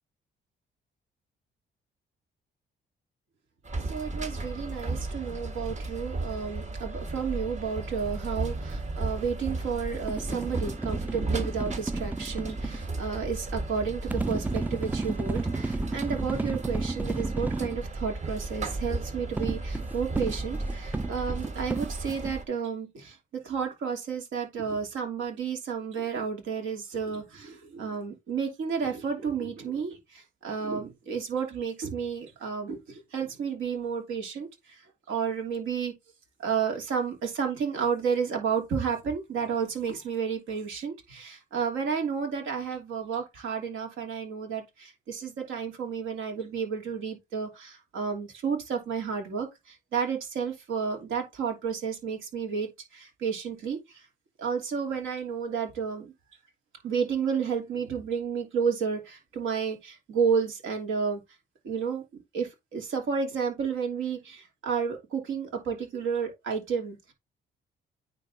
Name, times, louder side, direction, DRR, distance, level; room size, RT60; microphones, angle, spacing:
sound 1, 3.6-22.4, right 2 dB, 35° right, 1.3 m, -34 dB
voice 1, 3.8-34.8 35.1-35.9 36.4-54.0 54.4-56.1 56.8-61.2 61.6-62.0 62.3-67.0, right 6 dB, 80° right, 2.9 m, -31 dB
sound 2, 9.9-12.8 14.1-17.8 19.4-22.3, right 3 dB, 10° right, 0.3 m, -33 dB
9.4 x 3.9 x 3.8 m
cardioid pair, 90°, 20 cm